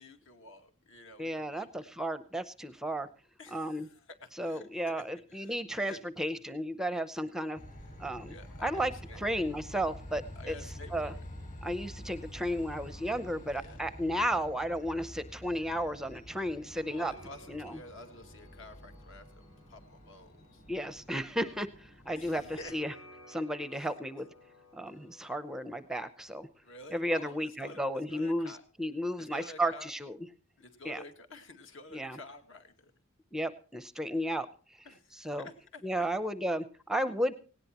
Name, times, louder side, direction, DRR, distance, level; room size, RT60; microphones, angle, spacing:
voice 1, 0.0-1.9 3.4-6.0 6.9-7.0 8.3-9.2 10.4-11.2 13.5-13.8 16.9-20.6 22.1-23.0 23.7-23.9 24.9-25.0 26.6-28.6 29.2-29.9 30.6-32.9 34.8-36.1, left 2 dB, 60° left, 7 dB, 2.2 m, -51 dB
voice 2, 1.2-3.1 3.5-3.9 4.4-7.6 8.0-8.3 8.6-10.5 10.9-11.1 11.6-17.1 17.5-17.8 20.7-22.9 23.3-24.3 24.7-26.5 26.9-30.2 30.8-31.0 31.9-32.2 33.3-34.8 35.1-35.5 35.8-37.3, equal, ahead, 12 dB, 0.6 m, -33 dB
Train, 7.6-22.7, equal, 40° left, 7.4 m, -48 dB
sound 1, 9.1-26.5, left 1 dB, 85° left, 5.2 m, -60 dB
18.5 x 17.5 x 2.9 m, 0.38 s
head